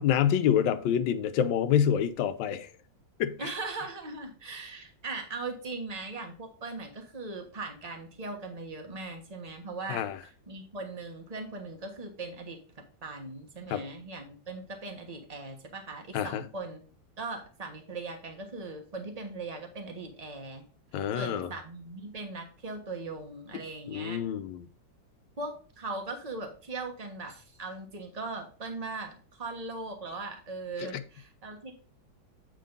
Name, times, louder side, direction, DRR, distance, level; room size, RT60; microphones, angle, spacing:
voice 1, 0.0-2.7 3.2-3.4 9.9-10.2 13.7-13.8 16.1-16.4 20.9-21.5 23.9-24.7 30.8-30.9, left 9 dB, 75° left, 1.3 m, -27 dB
voice 2, 3.4-16.8 17.2-20.7 21.1-24.2 25.4-31.7, right 3 dB, 25° right, 1.2 m, -39 dB
8.4 x 3.8 x 5.1 m
omnidirectional pair, 2.1 m